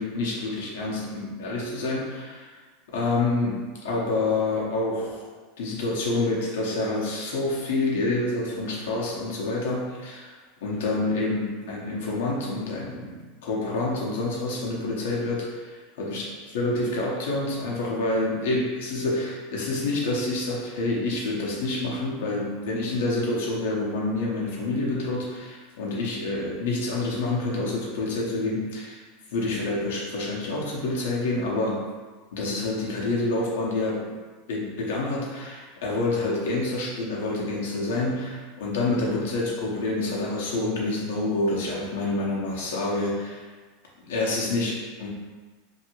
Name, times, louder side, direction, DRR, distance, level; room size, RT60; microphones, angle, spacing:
voice 1, 0.0-2.5 2.9-5.3 5.6-10.4 10.6-16.2 16.5-29.0 29.3-31.9 32.3-34.1 34.5-43.5 44.0-45.1, left 2 dB, 75° left, -3 dB, 0.8 m, -27 dB
2.7 x 2.6 x 2.9 m, 1.4 s
hypercardioid pair, 100°, 0 cm